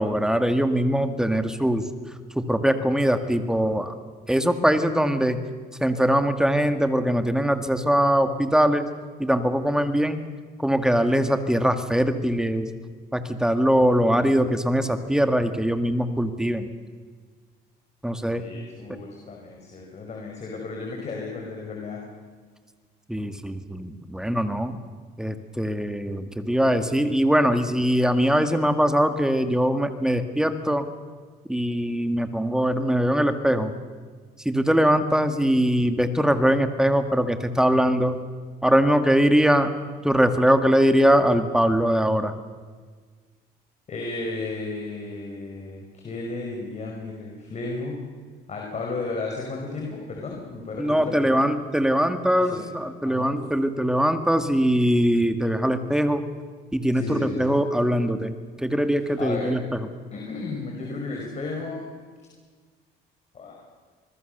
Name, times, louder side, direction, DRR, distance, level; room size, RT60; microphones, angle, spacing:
voice 1, 0.0-1.9 2.4-3.9 4.3-5.4 5.8-8.9 9.2-10.2 10.6-12.7 13.1-16.7 18.0-18.4 23.1-24.8 25.2-30.9 31.5-33.7 34.5-38.2 38.6-39.7 40.0-42.3 50.8-56.2 56.7-59.9, equal, 5° right, 8 dB, 1.9 m, -22 dB
voice 2, 18.4-22.0 43.9-48.0 48.5-51.4 52.3-52.7 53.0-53.3 56.9-57.5 59.2-59.5 60.1-61.9 63.3-63.6, left 3 dB, 40° left, 0 dB, 5.5 m, -33 dB
25.5 x 21.5 x 6.8 m, 1.5 s
cardioid pair, 110°, 17 cm